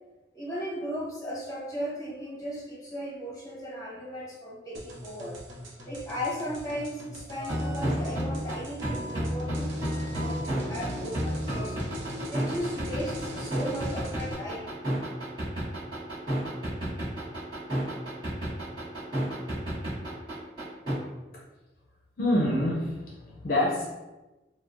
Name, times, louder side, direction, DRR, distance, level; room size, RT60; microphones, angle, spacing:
voice 1, 0.3-5.4 5.9-14.7, equal, 20° left, -5 dB, 0.9 m, -36 dB
sound 1, 4.7-14.3, left 1 dB, 90° right, 0.6 m, -42 dB
sound 2, 7.4-20.9, equal, 25° right, 1.3 m, -31 dB
voice 2, 22.2-23.8, left 1 dB, 50° left, -4 dB, 0.5 m, -26 dB
4.4 x 2.0 x 2.5 m, 1.1 s
head